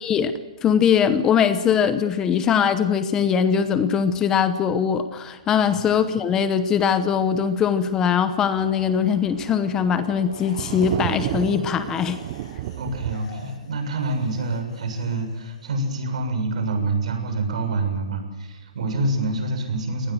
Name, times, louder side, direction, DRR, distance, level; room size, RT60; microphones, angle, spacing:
voice 1, 0.0-12.2, left 7 dB, 15° left, 11 dB, 0.9 m, -21 dB
Thunder, 6.2-6.3 6.7-6.8 7.2-7.3 7.6-7.7 7.9-13.1, right 14 dB, 30° right, 0.8 m, -33 dB
sound 1, 10.3-15.7, left 4 dB, 45° left, 7.7 m, -46 dB
voice 2, 12.8-20.1, right 2 dB, 65° right, 5 dB, 7.2 m, -26 dB
24.5 x 19.0 x 7.8 m, 1.2 s
hypercardioid pair, 160°, 4 cm